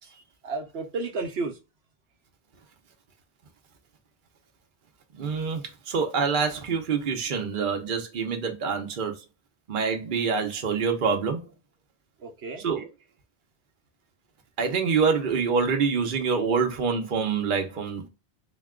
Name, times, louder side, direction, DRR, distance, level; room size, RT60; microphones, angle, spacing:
voice 1, 0.0-1.6 12.2-12.7, right 3 dB, 80° right, 1.0 m, -33 dB
voice 2, 5.1-9.2 9.7-11.4 12.6-12.9 14.6-18.1, right 5 dB, 55° right, 0.9 m, -26 dB
3.9 x 2.2 x 3.6 m
omnidirectional pair, 1.1 m